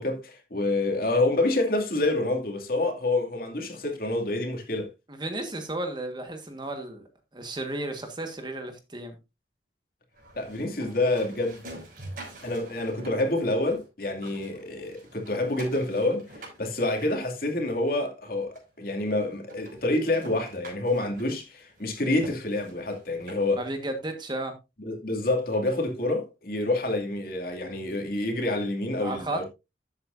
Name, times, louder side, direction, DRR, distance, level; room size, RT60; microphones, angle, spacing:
voice 1, 0.0-4.9 10.4-11.6 12.4-18.5 18.8-23.6 24.8-29.4, left 2 dB, 55° left, 2.5 m, -27 dB
voice 2, 5.1-7.1 7.3-9.2 23.6-24.5 29.0-29.4, right 2 dB, 25° right, 1.5 m, -33 dB
sound 1, 10.1-13.9 14.1-17.9 18.6-18.7 19.1-19.2 19.5-23.7, right 1 dB, 50° right, 5.7 m, -46 dB
12.0 x 8.2 x 2.6 m
head